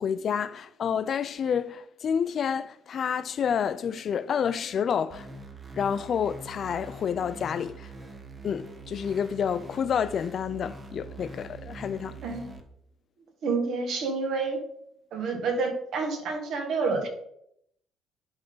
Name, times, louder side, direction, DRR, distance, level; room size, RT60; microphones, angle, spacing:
voice 1, 0.0-5.3 5.7-7.9 8.4-12.2, left 7 dB, 45° left, 0.3 m, -29 dB
sound 1, 5.1-12.6, right 3 dB, 25° right, 0.9 m, -44 dB
voice 2, 12.2-12.6 13.4-14.6 15.1-17.1, right 4 dB, 60° right, 1.6 m, -28 dB
10.5 x 3.8 x 3.9 m
cardioid pair, 130°, 0 cm